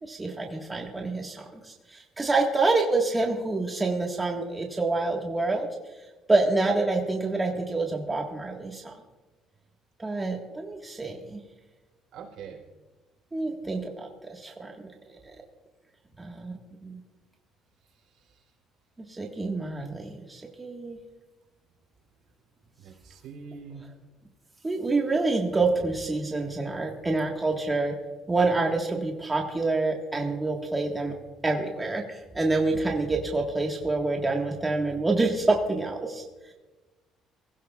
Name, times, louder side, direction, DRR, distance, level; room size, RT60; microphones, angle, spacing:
voice 1, 0.0-5.7 6.3-9.0 10.0-11.4 13.3-14.7 16.2-17.0 19.0-21.0 24.6-27.9 28.3-31.1 31.4-36.2, right 3 dB, 15° right, 0 dB, 1.6 m, -27 dB
voice 2, 12.1-12.6 22.8-23.8, right 6 dB, 70° right, 1 dB, 3.7 m, -43 dB
23.0 x 15.5 x 2.4 m, 1.2 s
cardioid pair, 110°, 0 cm